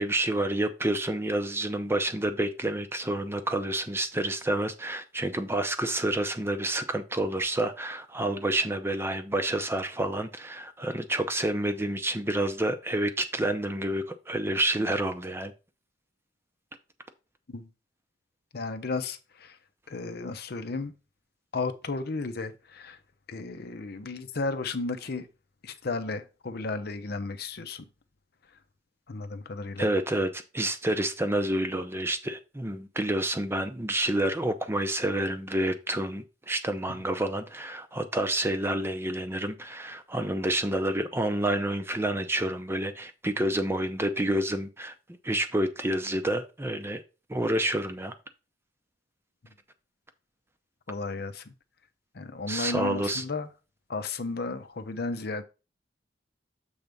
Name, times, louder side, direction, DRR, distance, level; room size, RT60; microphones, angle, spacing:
voice 1, 0.0-15.5 29.8-44.9 45.2-47.0 47.3-48.1 52.5-53.2, right 1 dB, 15° right, 0.6 m, -29 dB
voice 2, 18.5-19.6 19.9-20.9 21.5-23.0 23.3-25.3 25.6-27.8 29.1-29.9 50.9-51.5 52.1-53.5 53.9-55.4, left 3 dB, 60° left, 0.7 m, -34 dB
7.1 x 3.4 x 5.2 m
head